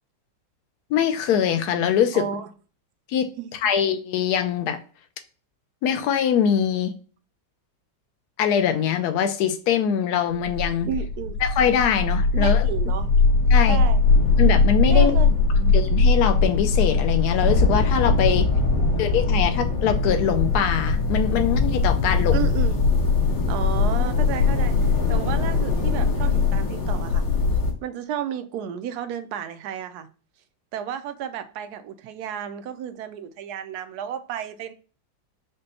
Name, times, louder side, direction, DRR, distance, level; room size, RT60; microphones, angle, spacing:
voice 1, 0.9-2.2 3.1-4.8 5.8-6.9 8.4-10.9 11.4-12.6 13.5-13.8 14.4-15.2 15.6-18.4 19.0-22.5, left 8 dB, 70° left, 1.1 m, -23 dB
voice 2, 2.1-2.5 3.4-3.5 10.8-11.4 12.3-13.1 13.7-14.0 14.9-15.3 18.2-19.1 22.3-22.8 23.5-24.8 25.1-27.3 27.8-30.1 30.7-34.7, right 9 dB, 70° right, 1.0 m, -32 dB
sound 1, 10.3-27.7, left 4 dB, 90° left, 2.1 m, -20 dB
5.2 x 2.2 x 4.1 m
omnidirectional pair, 2.0 m